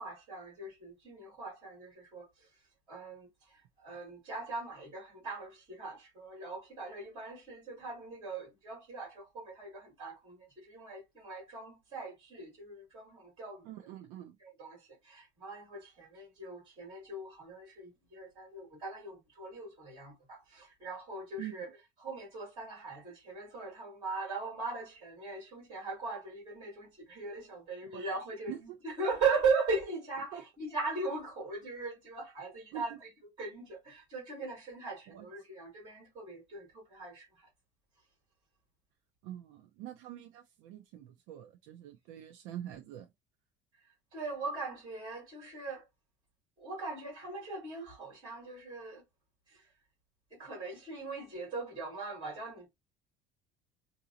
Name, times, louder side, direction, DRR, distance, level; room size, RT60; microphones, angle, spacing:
voice 1, 0.0-2.5 2.9-13.7 14.4-21.7 22.0-33.1 33.4-37.5 44.1-45.9 46.6-49.0 49.5-49.7 50.3-52.7, right 4 dB, 30° right, 3.3 m, -39 dB
voice 2, 13.6-14.4 21.4-21.7 27.9-28.1 28.5-28.8 30.3-30.4 32.7-33.0 35.1-35.3 39.2-43.1, right 12 dB, 85° right, 0.6 m, -45 dB
4.8 x 2.7 x 2.8 m
cardioid pair, 180°, 15 cm